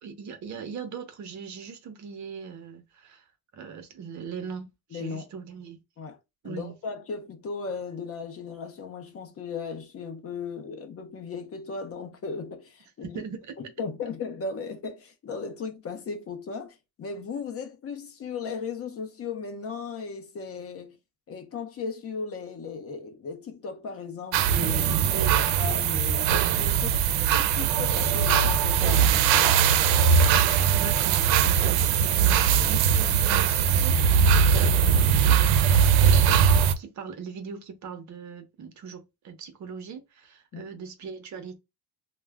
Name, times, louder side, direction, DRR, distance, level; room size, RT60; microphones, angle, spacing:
voice 1, 0.0-3.3 3.5-5.8 6.4-6.7 13.1-13.5 25.1-25.4 30.7-41.6, right 6 dB, 45° right, 0.8 m, -40 dB
voice 2, 4.9-5.3 6.0-6.2 6.4-13.2 13.6-21.0 21.3-29.6 40.5-40.6, left 5 dB, 35° left, 0.6 m, -36 dB
sound 1, 24.3-36.7, right 7 dB, 85° right, 0.5 m, -21 dB
2.3 x 2.1 x 3.3 m
cardioid pair, 120°, 40 cm